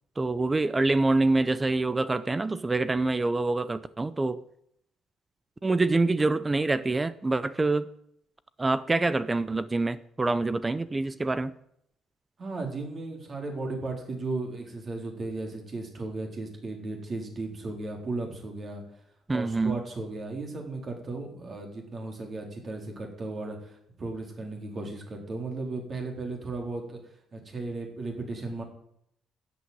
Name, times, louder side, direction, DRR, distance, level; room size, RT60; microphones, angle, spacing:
voice 1, 0.2-4.4 5.6-7.9 8.6-11.5 19.3-19.8, right 2 dB, 15° right, 15 dB, 0.6 m, -26 dB
voice 2, 12.4-18.8 19.3-27.0 27.3-28.6, right 3 dB, 35° right, 2 dB, 4.0 m, -35 dB
12.5 x 8.7 x 9.5 m, 0.73 s
cardioid pair, 140°, 0 cm